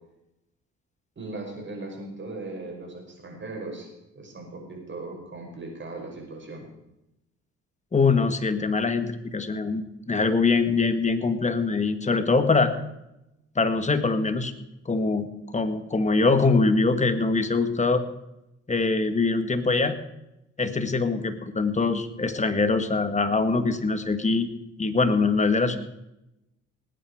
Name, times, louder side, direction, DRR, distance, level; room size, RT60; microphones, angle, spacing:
voice 1, 1.2-3.9 4.1-6.7, right 2 dB, 40° right, 1 dB, 5.6 m, -38 dB
voice 2, 7.9-12.7 13.5-14.5 14.8-15.3 15.5-18.0 18.7-20.0 20.6-24.5 24.8-25.8, left 4 dB, 25° left, 9 dB, 1.6 m, -23 dB
19.5 x 9.2 x 4.8 m, 0.88 s
cardioid pair, 80°, 29 cm